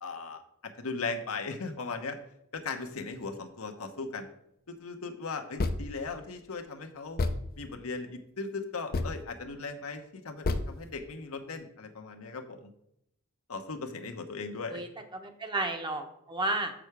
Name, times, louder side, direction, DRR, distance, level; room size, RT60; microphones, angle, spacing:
voice 1, 0.0-2.2 2.5-4.3 4.7-7.2 7.6-12.7 13.5-14.8, left 4 dB, 80° left, 5 dB, 1.0 m, -38 dB
sound 1, 5.6-6.0 6.4-6.5 7.2-7.6 8.9-9.2 10.4-10.7, left 2 dB, 45° left, 0.6 m, -29 dB
voice 2, 14.7-16.7, right 2 dB, 20° right, 5 dB, 0.9 m, -33 dB
6.8 x 6.2 x 4.8 m, 0.76 s
head